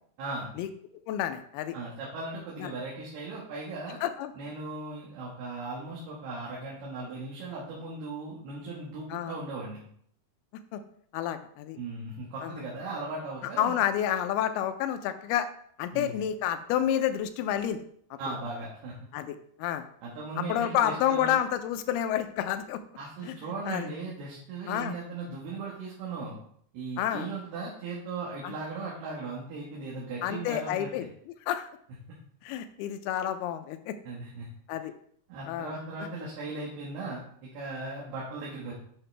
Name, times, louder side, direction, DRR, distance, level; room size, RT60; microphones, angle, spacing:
voice 1, 0.2-0.5 1.7-4.0 4.3-9.8 11.8-13.7 15.9-16.2 18.2-18.9 20.0-21.3 23.0-26.4 26.7-31.1 34.0-34.5 35.3-38.7, right 3 dB, 75° right, -5 dB, 3.4 m, -38 dB
voice 2, 1.1-1.8 2.6-2.7 4.0-4.3 9.1-9.4 10.7-10.8 11.1-11.8 12.4-12.5 13.6-15.5 15.8-17.8 19.1-19.8 20.4-22.8 23.2-23.9 24.7-24.9 27.0-27.3 28.4-28.5 30.2-31.1 31.5-31.7 32.4-33.9 34.7-34.9 35.5-35.7, left 10 dB, 80° left, 9 dB, 2.4 m, -29 dB
8.8 x 5.8 x 3.3 m, 0.63 s
omnidirectional pair, 4.7 m